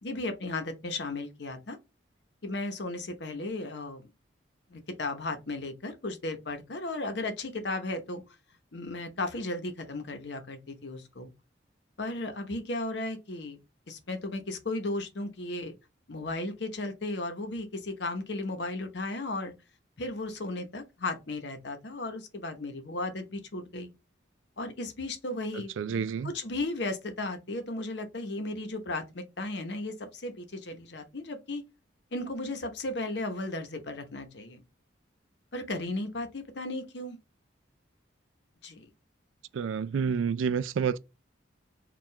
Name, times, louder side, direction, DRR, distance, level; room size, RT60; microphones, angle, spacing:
voice 1, 0.0-1.8 2.4-4.1 4.7-8.2 8.7-11.3 12.0-13.6 13.9-15.7 16.1-19.5 20.0-23.9 24.6-31.6 32.1-34.6 35.5-37.2 38.6-38.9, left 2 dB, 60° left, 0.8 m, -35 dB
voice 2, 25.5-26.3 39.5-41.0, right 6 dB, 80° right, 0.3 m, -29 dB
4.5 x 2.4 x 3.2 m
head